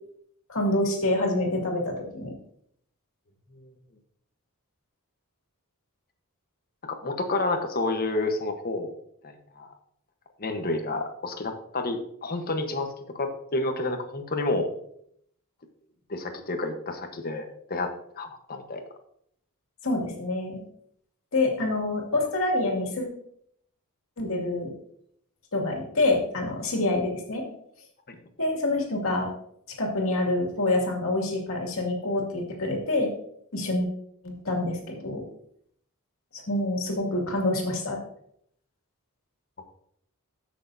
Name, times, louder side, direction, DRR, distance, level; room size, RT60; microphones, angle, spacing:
voice 1, 0.5-2.3 19.8-20.6 21.3-23.1 24.2-24.7 25.5-27.4 28.4-29.3 29.8-33.1 33.5-33.9 34.2-35.2 36.3-38.0, left 2 dB, 65° left, 0 dB, 2.4 m, -26 dB
voice 2, 6.8-8.9 9.2-9.7 10.4-14.7 16.1-18.8 28.1-28.2, left 2 dB, 45° left, 6 dB, 1.1 m, -30 dB
14.0 x 6.5 x 2.7 m, 0.69 s
head